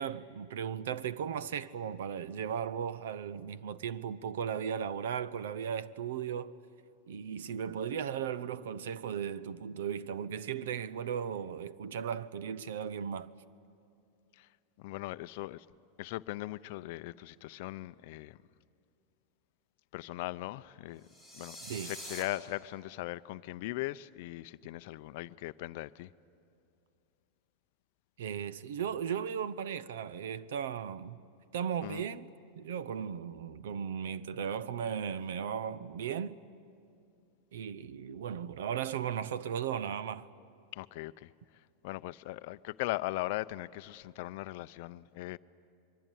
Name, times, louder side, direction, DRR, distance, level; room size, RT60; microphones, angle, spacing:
voice 1, 0.0-6.6 7.1-13.3 21.6-21.9 28.2-31.2 31.5-36.4 37.5-40.3, right 8 dB, 85° right, 0.8 m, -36 dB
voice 2, 14.8-15.6 16.0-18.4 19.9-21.0 21.3-21.6 21.8-26.1 31.8-32.0 40.8-41.3 41.8-45.4, left 18 dB, 50° left, 0.5 m, -39 dB
sound 1, 21.0-22.2, equal, 20° right, 4.2 m, -45 dB
23.5 x 23.5 x 9.2 m
supercardioid pair, 170°, 0 cm